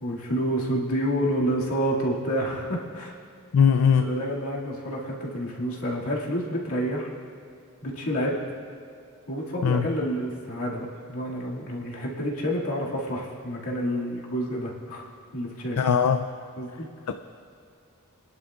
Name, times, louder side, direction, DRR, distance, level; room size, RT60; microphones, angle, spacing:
voice 1, 0.0-3.2 4.0-7.1 7.8-8.4 9.3-15.1 15.3-15.8 16.6-16.9, equal, 70° left, -4 dB, 2.2 m, -29 dB
voice 2, 3.5-4.1 9.6-9.9 15.8-16.3 17.1-17.2, left 7 dB, 85° left, 8 dB, 0.4 m, -20 dB
26.0 x 11.0 x 2.4 m, 2.5 s
head